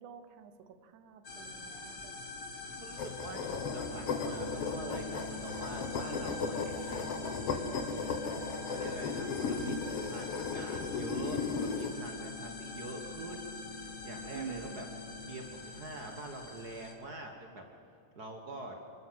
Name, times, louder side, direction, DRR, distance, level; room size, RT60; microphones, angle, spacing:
voice 1, 0.0-2.1 14.3-14.9, right 7 dB, 70° right, 9 dB, 2.5 m, -47 dB
sound 1, 1.2-16.9, left 3 dB, 35° left, 1.8 m, -45 dB
voice 2, 2.6-8.0 8.7-9.7 10.0-13.5 13.8-14.8 15.3-17.6 18.1-18.7, right 1 dB, 45° right, 3 dB, 1.3 m, -45 dB
sound 2, 3.0-11.9, left 5 dB, 55° left, 1.9 m, -36 dB
sound 3, 3.6-15.6, left 5 dB, 85° left, 6.9 m, -47 dB
28.0 x 12.5 x 7.7 m, 2.9 s
omnidirectional pair, 3.7 m